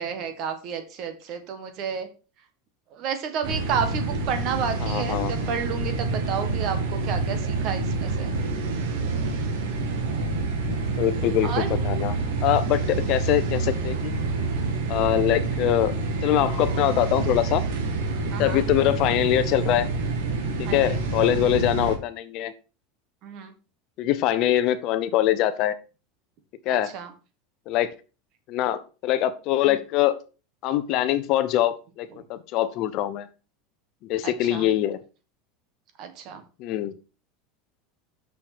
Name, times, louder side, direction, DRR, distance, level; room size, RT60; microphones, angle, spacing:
voice 1, 0.0-2.1 2.9-8.4 11.4-11.7 18.3-18.6 20.6-21.0 23.2-23.5 26.7-27.1 29.6-29.8 32.1-32.2 34.2-34.7 36.0-36.4, right 7 dB, 45° right, 8 dB, 1.6 m, -31 dB
sound 1, 3.4-22.0, right 3 dB, 75° right, 2.0 m, -27 dB
voice 2, 4.8-5.3 11.0-11.5 11.8-12.1 12.4-14.2 14.9-15.9 16.2-17.6 18.4-19.9 20.6-22.5 24.0-25.8 26.7-26.9 27.7-27.9 28.5-30.2 30.6-33.3 34.0-35.0 36.6-36.9, left 12 dB, 45° left, 12 dB, 0.7 m, -23 dB
6.4 x 5.9 x 5.1 m, 0.33 s
supercardioid pair, 150°, 0 cm